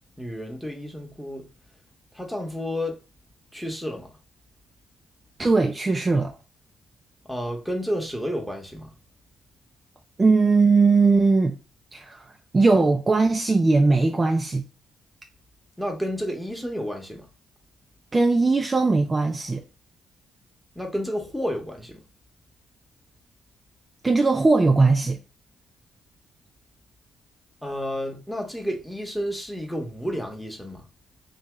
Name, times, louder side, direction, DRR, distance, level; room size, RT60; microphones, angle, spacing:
voice 1, 0.2-1.5 2.1-3.0 3.5-4.1 7.3-8.9 15.8-17.3 20.7-22.0 27.6-30.8, equal, ahead, 0.9 m, -31 dB
voice 2, 5.4-6.3 10.2-11.6 11.9-12.3 12.5-14.6 18.1-19.6 24.0-25.2, right 3 dB, 25° right, 0.3 m, -19 dB
2.8 x 2.7 x 3.4 m
cardioid pair, 90°, 0 cm